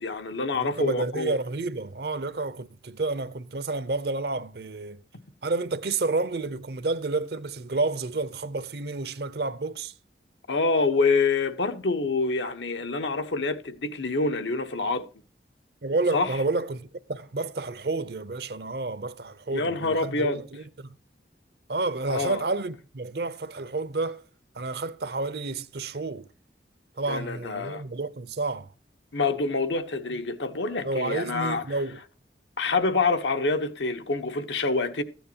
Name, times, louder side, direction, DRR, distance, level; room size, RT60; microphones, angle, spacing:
voice 1, 0.0-1.4 10.5-15.1 16.1-16.4 19.5-20.4 22.1-22.4 27.1-27.8 29.1-31.6 32.6-35.0, left 3 dB, 90° left, 1.1 m, -26 dB
voice 2, 0.5-5.0 5.4-9.9 15.8-21.0 21.7-24.2 24.5-26.3 27.0-28.7 30.8-32.0, right 3 dB, 65° right, 0.7 m, -30 dB
14.0 x 9.1 x 2.9 m
head